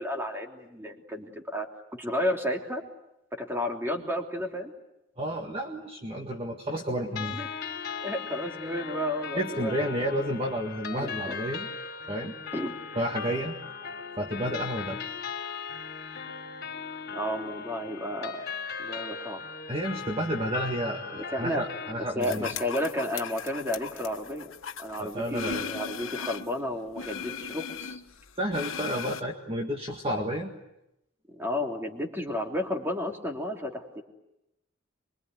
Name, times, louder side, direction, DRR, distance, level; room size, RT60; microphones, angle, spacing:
voice 1, 0.0-2.8 3.3-4.7 7.1-7.5 8.0-9.7 11.0-11.4 12.5-12.7 13.3-13.5 17.1-18.5 18.8-19.4 21.2-21.6 22.0-24.5 24.8-28.0 31.3-34.0, left 1 dB, 10° right, 2 dB, 3.2 m, -32 dB
voice 2, 5.2-7.4 9.3-11.7 12.1-12.4 13.0-13.6 14.2-15.0 19.7-22.5 25.0-25.6 28.4-30.5, equal, 30° right, 1 dB, 1.9 m, -31 dB
sound 1, 7.2-21.9, left 6 dB, 50° left, 4.0 m, -38 dB
sound 2, 22.2-26.6 26.9-29.2, left 7 dB, 90° left, 1.4 m, -38 dB
25.5 x 23.5 x 9.5 m, 0.88 s
head